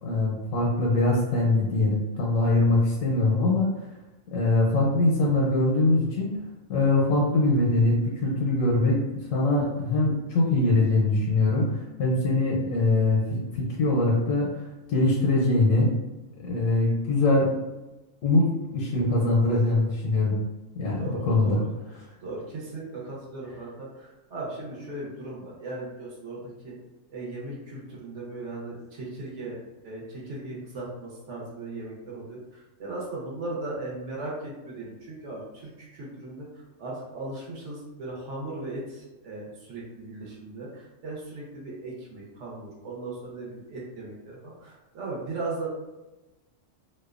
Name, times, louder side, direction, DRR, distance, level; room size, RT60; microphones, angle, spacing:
voice 1, 0.0-3.7 4.3-6.4 6.7-9.0 9.3-11.7 12.0-14.6 14.9-15.9 16.4-17.5 18.2-20.4 20.7-21.6, left 2 dB, 85° left, -2 dB, 1.0 m, -23 dB
voice 2, 21.0-21.6 22.2-26.7 27.1-36.5 36.8-45.7, right 2 dB, 70° right, -4 dB, 1.0 m, -37 dB
2.5 x 2.1 x 2.3 m, 1.1 s
omnidirectional pair, 1.3 m